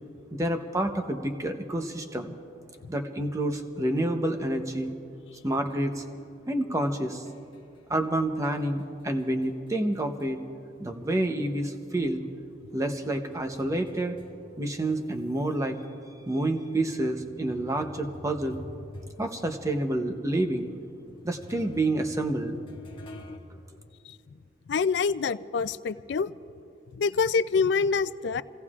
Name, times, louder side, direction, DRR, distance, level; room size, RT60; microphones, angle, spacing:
voice 1, 0.3-2.3 2.9-5.0 5.4-6.0 6.5-7.2 7.9-10.4 10.8-12.2 12.7-14.2 14.6-15.8 16.3-18.6 19.2-20.7 21.2-22.6, right 1 dB, 15° right, 5 dB, 0.8 m, -28 dB
sound 1, 5.6-10.5 10.9-15.5 16.1-16.2 17.0-23.4, equal, 30° left, 1.1 m, -49 dB
voice 2, 24.7-26.3 26.9-28.4, left 5 dB, 70° left, 14 dB, 0.4 m, -26 dB
28.0 x 17.0 x 2.4 m, 2.6 s
head